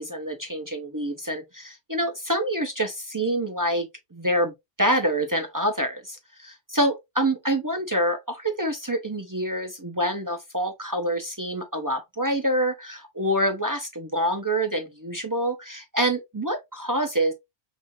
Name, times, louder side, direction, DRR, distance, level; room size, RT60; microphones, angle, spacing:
voice 1, 0.0-4.5 4.8-17.3, right 1 dB, 25° right, 0.4 m, -26 dB
4.8 x 2.4 x 2.6 m
omnidirectional pair, 1.1 m